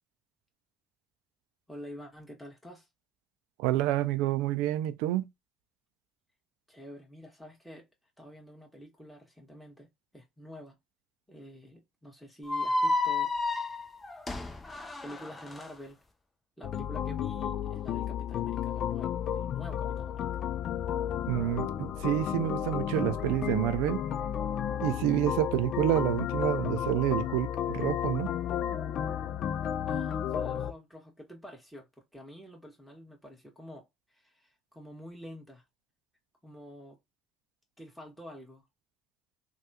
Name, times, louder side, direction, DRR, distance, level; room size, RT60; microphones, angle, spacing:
voice 1, 1.7-2.9 6.7-7.9 8.2-9.9 10.1-10.8 11.3-13.3 15.0-16.0 16.6-20.2 29.9-35.6 36.4-37.0 37.8-38.7, equal, 5° left, 1.6 m, -48 dB
voice 2, 3.6-5.3 21.3-24.0 24.8-28.3, right 13 dB, 85° right, 0.3 m, -28 dB
sound 1, 12.5-15.7, left 2 dB, 20° left, 0.7 m, -31 dB
sound 2, 16.6-30.7, left 9 dB, 60° left, 0.4 m, -32 dB
3.3 x 2.3 x 2.8 m
supercardioid pair, 80°, 0 cm